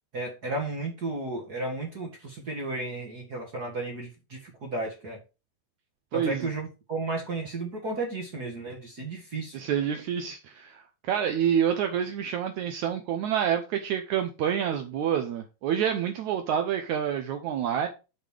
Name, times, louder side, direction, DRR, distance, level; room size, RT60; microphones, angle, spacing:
voice 1, 0.1-5.2 6.1-9.6, right 2 dB, 40° right, 1.4 m, -33 dB
voice 2, 6.1-6.5 9.5-17.9, right 9 dB, 85° right, 1.6 m, -28 dB
6.8 x 6.3 x 5.0 m
omnidirectional pair, 4.5 m